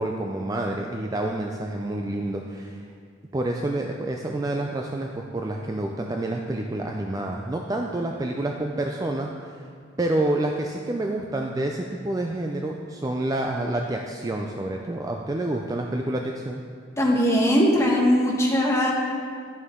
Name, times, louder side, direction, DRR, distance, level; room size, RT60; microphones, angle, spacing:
voice 1, 0.0-2.8 3.3-9.6 10.0-16.6, right 1 dB, 20° right, 1 dB, 0.3 m, -28 dB
voice 2, 17.0-18.9, equal, 15° left, -2 dB, 1.1 m, -20 dB
11.0 x 6.7 x 3.7 m, 2.1 s
head